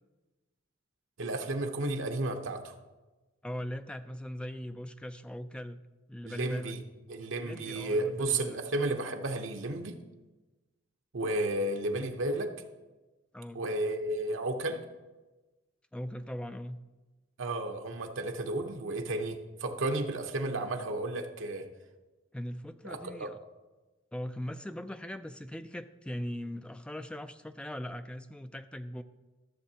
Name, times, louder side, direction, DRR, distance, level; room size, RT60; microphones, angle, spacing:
voice 1, 1.2-2.7 6.2-6.8 7.1-10.0 11.1-12.5 13.5-14.8 17.4-21.7 22.8-23.3, right 2 dB, 75° right, 4 dB, 0.9 m, -32 dB
voice 2, 3.4-5.8 6.1-6.8 7.4-8.8 13.3-13.6 15.9-16.8 22.3-23.5 24.1-29.0, equal, 5° left, 10 dB, 0.3 m, -40 dB
14.0 x 6.9 x 2.9 m, 1.2 s
head